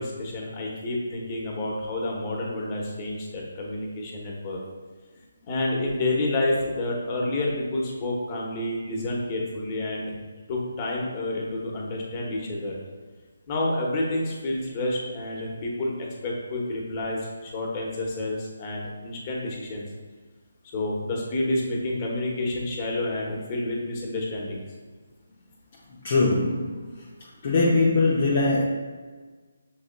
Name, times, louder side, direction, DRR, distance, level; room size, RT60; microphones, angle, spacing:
voice 1, 0.0-4.6 5.5-10.1 10.5-12.7 13.5-19.9 20.7-24.6, left 1 dB, 30° left, -2 dB, 1.0 m, -29 dB
voice 2, 25.9-26.9 27.4-28.6, left 3 dB, 45° left, -4 dB, 0.6 m, -22 dB
6.3 x 3.7 x 2.2 m, 1.4 s
figure-of-eight pair, 155°, 0 cm